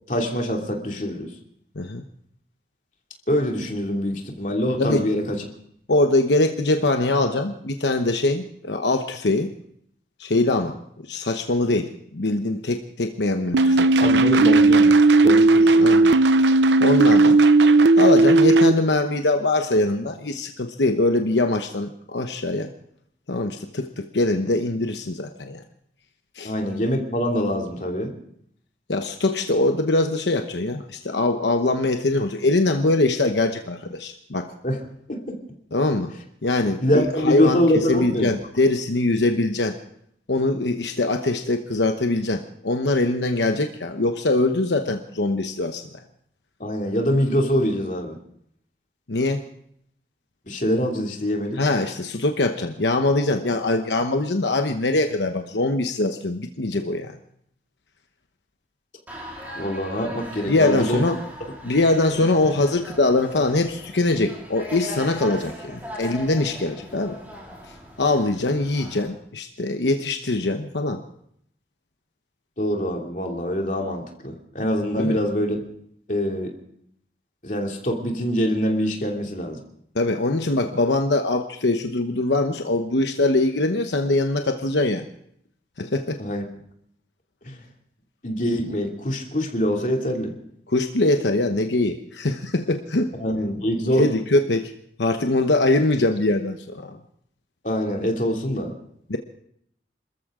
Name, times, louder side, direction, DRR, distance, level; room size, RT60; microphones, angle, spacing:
voice 1, 0.1-1.3 3.3-5.4 14.0-14.9 15.2-15.9 26.4-28.1 34.6-34.8 35.1-35.4 36.8-38.4 46.6-48.2 50.5-51.6 59.6-61.0 62.2-62.3 72.6-75.7 76.1-76.5 77.4-79.6 86.2-86.4 87.5-87.6 88.2-90.3 93.2-94.0 97.6-98.7, equal, 45° left, 1 dB, 2.8 m, -24 dB
voice 2, 5.9-9.5 10.2-10.8 11.1-14.2 14.9-15.0 15.8-16.1 16.8-17.4 18.0-22.7 23.3-25.6 26.4-26.5 28.9-34.5 35.7-36.1 36.4-39.8 40.3-45.8 49.1-49.4 51.6-57.1 60.5-61.2 61.6-67.2 68.0-71.0 75.0-75.2 79.9-85.0 85.8-86.2 90.7-93.1 94.0-94.7 95.0-97.0 99.1-99.2, left 2 dB, 85° left, 5 dB, 1.0 m, -22 dB
sound 1, 13.5-18.7, right 3 dB, 90° right, 0.6 m, -15 dB
sound 2, 59.1-69.1, equal, 10° right, 4.0 m, -39 dB
27.5 x 14.0 x 3.8 m, 0.68 s
head